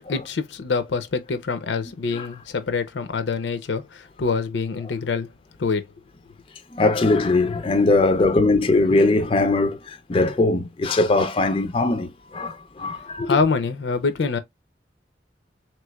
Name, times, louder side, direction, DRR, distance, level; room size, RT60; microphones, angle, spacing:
voice 1, 0.1-5.3 5.6-5.8 13.2-14.4, left 4 dB, 85° left, 0.5 m, -25 dB
voice 2, 6.7-13.4, left 2 dB, 30° left, 0.4 m, -20 dB
3.2 x 3.1 x 2.2 m
head